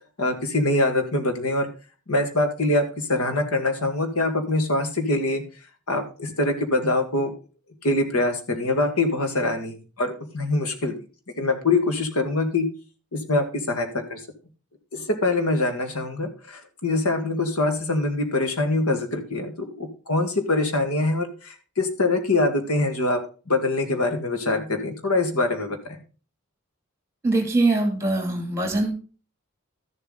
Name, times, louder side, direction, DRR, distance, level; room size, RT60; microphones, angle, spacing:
voice 1, 0.2-1.7 2.1-5.4 5.9-7.3 7.8-11.0 11.4-12.7 13.1-14.2 14.9-26.0, left 2 dB, 85° left, 7 dB, 1.9 m, -24 dB
voice 2, 27.2-28.9, right 2 dB, 10° right, 5 dB, 2.5 m, -22 dB
13.0 x 7.4 x 3.9 m, 0.34 s
head